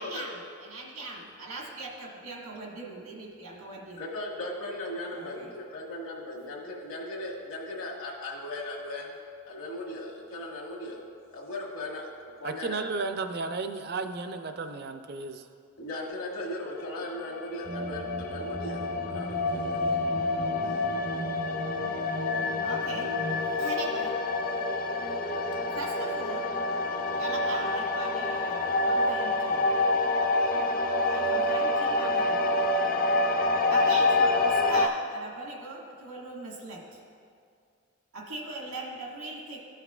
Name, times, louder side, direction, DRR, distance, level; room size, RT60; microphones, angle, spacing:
voice 1, 0.0-4.0 5.1-5.5 22.6-23.1 23.6-24.1 25.7-26.4 27.2-29.6 31.1-32.6 33.7-37.0 38.1-39.6, right 2 dB, 90° right, -2 dB, 1.6 m, -40 dB
voice 2, 4.0-9.1 9.5-11.0 11.3-12.9 15.8-20.1 20.4-20.6, left 1 dB, 70° left, -2 dB, 1.5 m, -38 dB
voice 3, 12.4-15.5, right 3 dB, 45° right, 7 dB, 0.4 m, -33 dB
sound 1, 16.8-34.9, left 2 dB, 40° left, 0.4 m, -27 dB
sound 2, 17.6-23.5, right 1 dB, 70° right, 0.7 m, -37 dB
14.0 x 5.7 x 2.4 m, 2.3 s
head